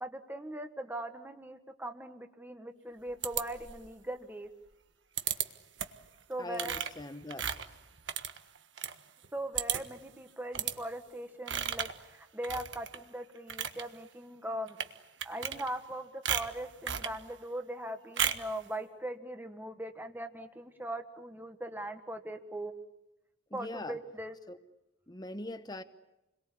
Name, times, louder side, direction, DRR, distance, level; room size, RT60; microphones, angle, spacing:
voice 1, 0.0-4.5 6.3-6.8 9.3-14.8 15.2-22.7 23.5-24.3, right 1 dB, 10° right, 1.5 m, -40 dB
sound 1, 3.2-3.9 5.2-5.5 5.8-6.1 6.5-8.9 9.2-9.3 9.6-10.0 10.5-10.8 11.5-12.0 12.4-13.0 13.4-13.8 14.7-14.9 15.2-15.9 16.3-17.2 18.2-18.5, right 9 dB, 65° right, 1.5 m, -34 dB
voice 2, 6.4-7.6 23.5-24.0 24.5-24.6 25.1-25.8, left 1 dB, 20° left, 1.1 m, -42 dB
29.5 x 22.5 x 8.5 m
head